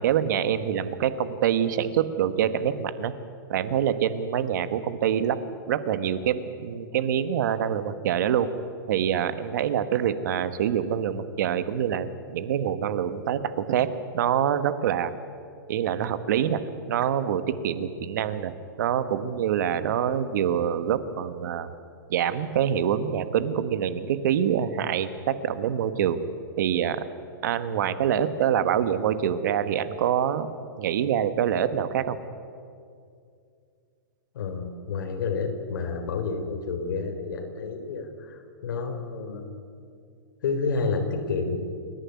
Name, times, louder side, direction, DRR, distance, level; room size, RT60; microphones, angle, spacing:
voice 1, 0.0-3.1 3.5-5.4 5.7-8.5 8.9-15.1 15.7-16.6 16.9-18.5 18.8-21.7 22.1-26.2 26.6-27.0 27.4-30.5 30.8-32.2, right 9 dB, 55° right, 12 dB, 1.3 m, -25 dB
voice 2, 34.3-39.6 40.4-41.6, left 4 dB, 65° left, 6 dB, 3.7 m, -30 dB
29.0 x 11.0 x 9.5 m, 2.3 s
hypercardioid pair, 160°, 12 cm